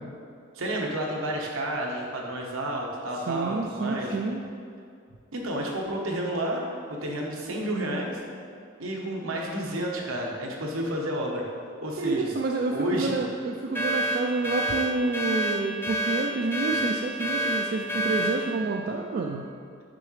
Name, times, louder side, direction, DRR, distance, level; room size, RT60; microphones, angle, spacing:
voice 1, 0.5-4.2 5.3-8.2 8.8-11.4 11.8-12.3 12.7-13.2, right 1 dB, 85° right, -1 dB, 1.0 m, -30 dB
voice 2, 3.3-4.4 12.0-19.4, right 3 dB, 50° right, 0 dB, 0.3 m, -28 dB
sound 1, 13.7-18.4, equal, 10° left, 0.6 m, -28 dB
6.1 x 5.7 x 3.2 m, 2.3 s
head